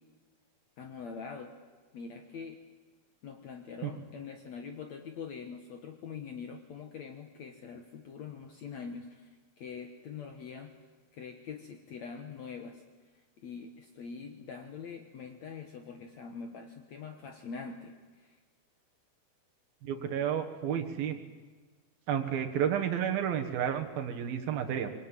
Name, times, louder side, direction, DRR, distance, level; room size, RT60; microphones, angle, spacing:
voice 1, 0.8-1.5 1.9-2.6 3.2-10.7 11.1-12.8 13.4-18.4, left 5 dB, 65° left, 5 dB, 1.9 m, -44 dB
voice 2, 19.8-21.2 22.1-24.9, right 9 dB, 70° right, 5 dB, 3.2 m, -31 dB
25.0 x 22.5 x 9.1 m, 1.4 s
omnidirectional pair, 4.7 m